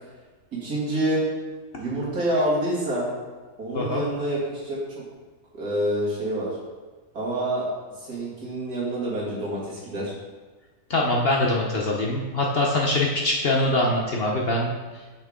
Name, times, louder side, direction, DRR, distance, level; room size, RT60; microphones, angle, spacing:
voice 1, 0.5-1.3 1.8-3.1 3.6-5.0 5.5-6.6 7.1-7.7 8.0-10.1, right 1 dB, 75° right, -6 dB, 2.5 m, -27 dB
voice 2, 3.7-4.0 10.9-14.7, left 1 dB, 50° left, -2 dB, 0.8 m, -23 dB
6.5 x 5.7 x 3.6 m, 1.3 s
omnidirectional pair, 1.6 m